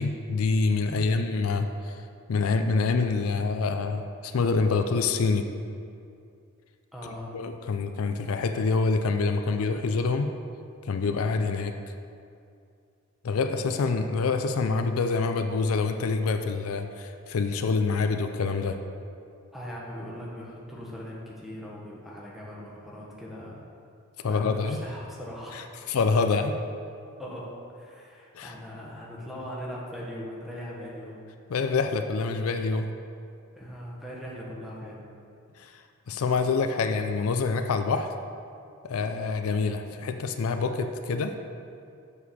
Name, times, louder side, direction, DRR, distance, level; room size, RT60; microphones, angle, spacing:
voice 1, 0.0-2.0 2.3-5.5 7.3-10.3 10.9-11.7 13.2-18.8 24.2-24.8 25.5-25.6 25.9-26.5 28.3-28.5 31.5-32.9 35.6-35.7 36.1-38.1 38.8-41.3, left 4 dB, 80° left, 7 dB, 0.4 m, -26 dB
voice 2, 0.9-1.2 6.9-7.4 19.5-23.6 24.2-25.7 27.2-31.2 33.5-35.0, equal, ahead, -5 dB, 1.2 m, -40 dB
7.2 x 6.4 x 4.2 m, 2.4 s
head